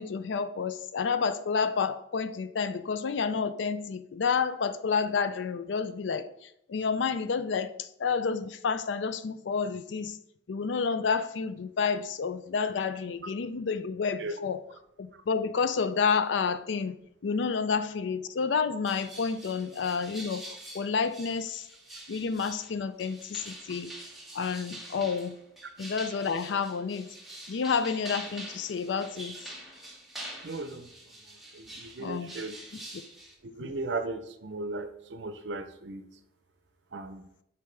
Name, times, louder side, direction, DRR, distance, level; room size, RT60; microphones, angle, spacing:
voice 1, 0.0-10.2 10.5-14.6 15.0-17.0 17.2-21.7 22.1-23.9 24.3-25.4 25.8-27.1 27.5-29.4 32.0-32.3, left 5 dB, 85° left, 12 dB, 0.4 m, -30 dB
sound 1, 18.8-33.3, right 1 dB, ahead, 1.1 m, -45 dB
voice 2, 30.4-30.9 31.2-32.5 33.4-36.1 36.9-37.3, right 3 dB, 75° right, 9 dB, 0.6 m, -37 dB
6.8 x 4.6 x 3.2 m, 0.76 s
head